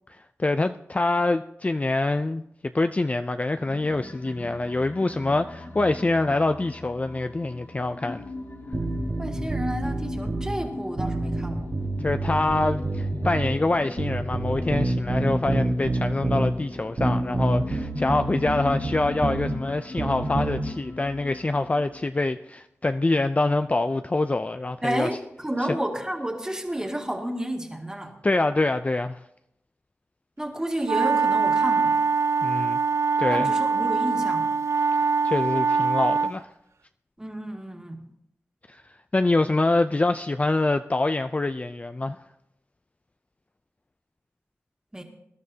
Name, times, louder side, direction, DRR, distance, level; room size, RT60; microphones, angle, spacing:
voice 1, 0.1-2.4 2.7-8.2 12.0-25.1 25.7-25.8 28.2-29.2 32.4-32.8 33.2-33.5 35.2-36.5 38.7-38.8 39.1-42.2, left 2 dB, 30° left, 0.4 m, -25 dB
sound 1, 3.6-22.1, left 2 dB, 55° left, 2.6 m, -39 dB
sound 2, 8.7-10.5 11.0-13.6 14.0-16.5 17.0-19.5 20.0-20.6, right 2 dB, 45° right, 1.3 m, -27 dB
voice 2, 9.2-11.7 24.8-28.1 30.4-32.0 33.3-34.5 37.2-38.0 44.9-45.0, right 1 dB, 15° right, 1.9 m, -31 dB
sound 3, 30.8-36.4, right 5 dB, 65° right, 0.3 m, -23 dB
21.5 x 12.0 x 2.8 m
wide cardioid pair, 90°, 5 cm